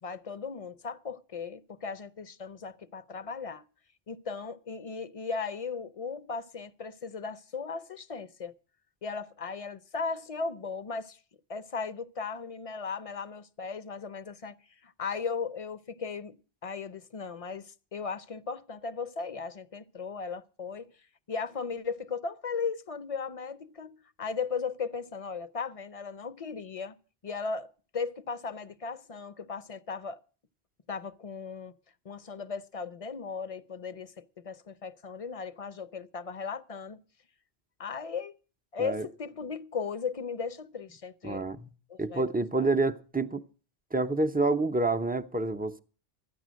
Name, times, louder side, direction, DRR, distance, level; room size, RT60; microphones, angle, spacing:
voice 1, 0.0-3.6 4.1-8.5 9.0-11.2 11.5-14.5 14.8-20.9 21.3-27.0 27.2-30.2 30.9-31.7 32.0-37.0 37.8-38.3 38.7-41.4 41.9-42.3 42.6-42.7, left 5 dB, 40° left, 0.7 m, -37 dB
voice 2, 41.2-41.7 42.0-43.4 43.9-45.8, right 3 dB, 10° right, 0.5 m, -28 dB
13.0 x 9.8 x 6.3 m
omnidirectional pair, 1.1 m